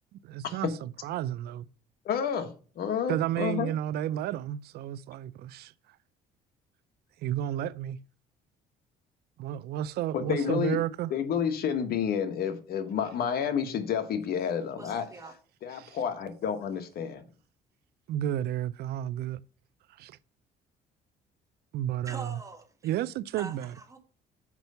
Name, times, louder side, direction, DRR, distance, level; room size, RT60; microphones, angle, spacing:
voice 1, 0.2-1.7 3.1-5.7 7.2-8.0 9.4-11.1 15.8-16.0 18.1-19.4 20.0-20.2 21.7-22.4 22.8-23.7, right 12 dB, 70° right, 0.4 m, -32 dB
voice 2, 2.0-2.5 2.8-3.7 10.1-10.8 11.1-15.0 15.6-17.2, left 7 dB, 65° left, 1.4 m, -30 dB
voice 3, 14.8-15.3 22.1-22.9 23.4-24.0, right 4 dB, 20° right, 1.8 m, -43 dB
6.0 x 5.3 x 6.8 m
cardioid pair, 110°, 17 cm